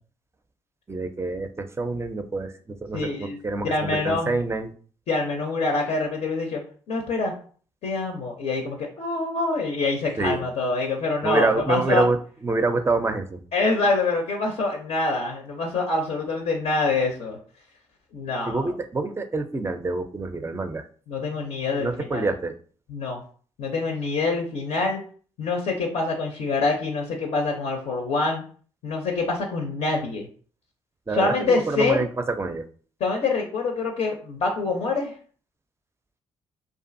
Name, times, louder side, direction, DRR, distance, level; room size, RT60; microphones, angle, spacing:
voice 1, 0.9-4.7 10.2-10.4 11.2-12.2 12.4-13.4 18.5-20.9 21.8-22.5 31.1-32.7, right 3 dB, 20° right, 8 dB, 0.4 m, -26 dB
voice 2, 2.9-3.4 3.6-4.4 5.1-6.6 6.9-7.3 7.8-12.0 13.5-17.4 18.1-18.7 21.1-22.3 22.9-23.2 23.6-25.0 25.4-28.4 28.8-30.3 31.1-32.0 33.0-35.1, left 3 dB, 60° left, 2 dB, 0.5 m, -25 dB
2.5 x 2.4 x 2.5 m, 0.44 s
hypercardioid pair, 45°, 13 cm